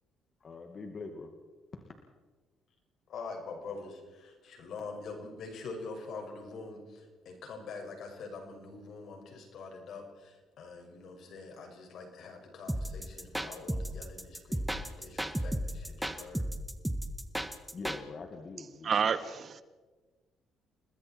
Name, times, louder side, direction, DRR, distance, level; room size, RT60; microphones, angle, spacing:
voice 1, 0.4-1.3 1.7-1.9 17.7-18.9, left 4 dB, 40° left, 2.3 m, -43 dB
voice 2, 3.1-16.4, left 4 dB, 65° left, 6.1 m, -44 dB
sound 1, 12.7-18.0, right 1 dB, 5° right, 1.6 m, -34 dB
voice 3, 18.8-19.6, right 6 dB, 50° right, 1.3 m, -29 dB
30.0 x 20.5 x 4.6 m
cardioid pair, 85°, 0 cm